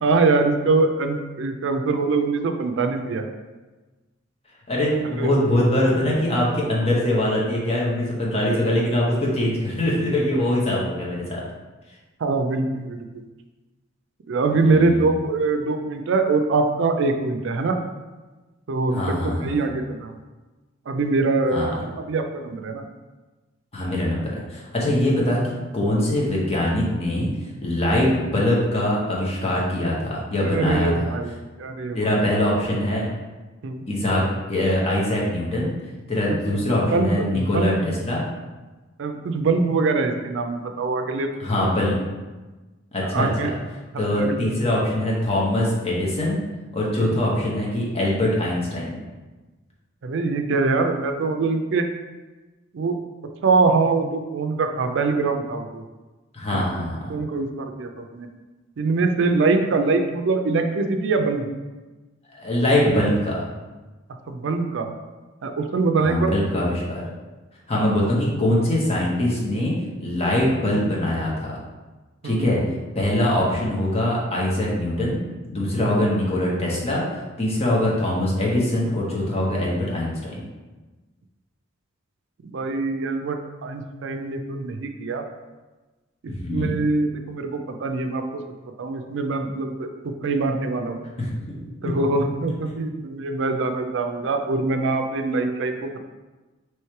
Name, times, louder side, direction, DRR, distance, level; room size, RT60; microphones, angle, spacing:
voice 1, 0.0-3.3 5.0-5.3 12.2-13.3 14.3-17.8 18.7-20.2 20.9-22.8 28.0-28.1 30.4-32.2 33.6-33.9 36.5-37.8 39.0-41.3 41.6-41.7 43.0-43.5 43.9-44.5 47.0-47.2 50.0-51.9 52.7-53.0 53.4-55.8 56.5-56.6 57.1-58.3 58.8-61.5 64.3-64.9 65.4-66.3 72.2-72.7 75.8-76.1 77.9-78.0 82.4-85.2 86.2-88.4 88.8-91.1 91.8-96.0, right 3 dB, 65° right, 6 dB, 0.4 m, -23 dB
voice 2, 4.7-11.4 14.6-15.0 18.9-19.5 21.5-21.7 23.7-25.4 25.7-27.3 27.6-31.1 31.9-33.1 33.9-35.7 36.1-38.2 41.4-42.0 42.9-43.5 44.0-46.4 46.7-49.0 56.3-57.0 62.3-63.4 66.0-67.0 67.7-69.7 70.0-71.6 72.2-72.6 72.9-75.2 75.5-77.0 77.4-80.4 86.3-86.7 91.2-91.3 91.8-91.9 92.7-92.9, left 1 dB, 30° left, -4 dB, 0.9 m, -23 dB
3.1 x 3.1 x 4.5 m, 1.2 s
head